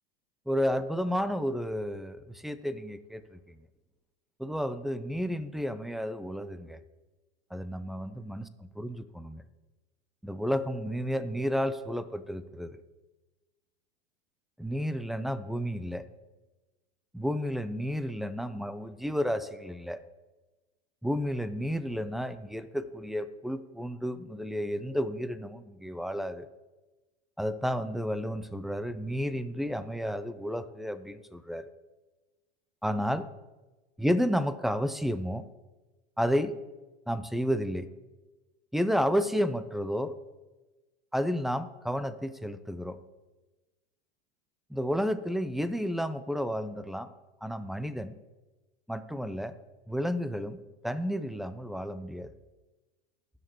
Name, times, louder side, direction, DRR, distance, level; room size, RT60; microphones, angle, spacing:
voice 1, 0.5-3.4 4.4-6.8 7.5-8.5 8.8-9.4 10.2-12.8 14.6-16.1 17.1-20.0 21.0-26.5 27.4-31.7 32.8-33.3 34.0-35.4 36.2-36.5 37.1-37.9 38.7-40.1 41.1-43.0 44.7-47.1 47.4-48.2 48.9-49.6 49.9-52.3, equal, ahead, 13 dB, 0.3 m, -31 dB
18.5 x 6.7 x 3.0 m, 1.2 s
hypercardioid pair, 110°, 30 cm